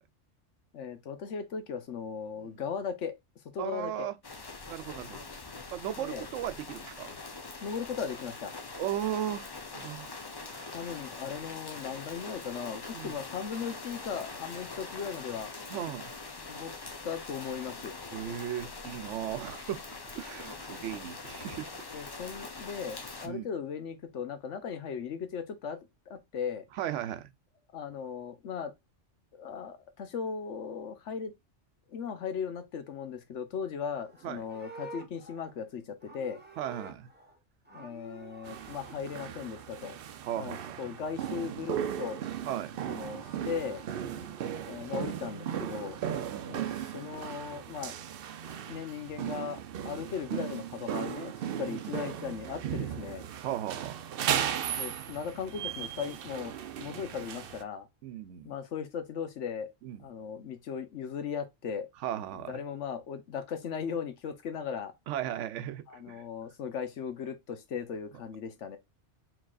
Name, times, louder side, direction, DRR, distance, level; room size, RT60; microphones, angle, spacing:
voice 1, 0.7-3.1 3.5-4.1 6.0-6.3 7.6-8.5 10.7-15.5 16.4-16.7 17.0-17.9 21.9-25.8 26.1-26.7 27.7-28.7 29.4-31.3 31.9-36.4 37.7-40.0 40.4-42.2 42.9-43.8 44.6-46.0 46.5-47.9 48.7-53.3 54.8-57.9 58.4-59.7 60.0-61.9 62.3-64.9 65.9-68.8, left 6 dB, 75° left, 1.2 m, -37 dB
voice 2, 3.6-4.1 4.7-5.2 5.7-7.1 8.8-10.2 10.4-10.8 12.9-13.1 15.7-16.1 18.1-19.8 20.1-21.7 21.9-22.1 23.2-23.5 26.7-27.3 34.2-34.4 36.6-37.1 40.2-40.8 42.5-42.7 44.0-44.4 46.1-46.8 50.1-50.2 51.7-51.9 53.4-54.0 58.0-58.5 59.8-60.0 62.0-62.6 65.1-66.2, right 11 dB, 85° right, 0.9 m, -37 dB
sound 1, 4.2-23.3, left 3 dB, 30° left, 0.5 m, -43 dB
Livestock farm animals working animals, 33.9-37.4 37.6-39.0 42.7-43.9, right 2 dB, 10° right, 1.0 m, -49 dB
sound 2, 38.4-57.6, right 9 dB, 60° right, 0.7 m, -36 dB
4.6 x 3.9 x 2.4 m
omnidirectional pair, 1.2 m